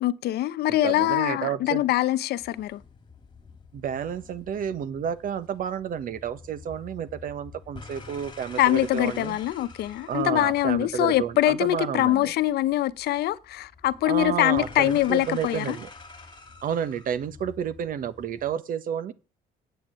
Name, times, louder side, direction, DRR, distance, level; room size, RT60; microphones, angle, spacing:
voice 1, 0.0-2.8 8.6-15.8, left 14 dB, 70° left, 0.9 m, -24 dB
voice 2, 0.7-1.8 3.7-9.4 10.1-12.3 14.0-15.9 16.6-19.1, right 8 dB, 55° right, 1.3 m, -30 dB
sound 1, 2.4-18.5, left 4 dB, 25° left, 2.3 m, -48 dB
9.0 x 8.0 x 9.0 m
cardioid pair, 110°, 17 cm